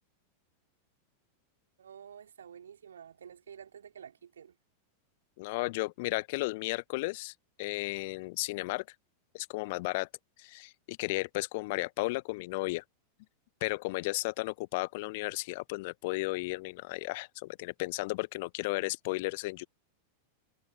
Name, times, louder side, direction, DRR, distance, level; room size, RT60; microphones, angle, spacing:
voice 1, 1.8-4.6, right 8 dB, 65° right, 4.4 m, -50 dB
voice 2, 5.4-7.3 7.6-8.8 9.3-10.1 10.4-12.8 13.6-19.6, left 23 dB, 50° left, 1.1 m, -34 dB
figure-of-eight pair, 90°, 0 cm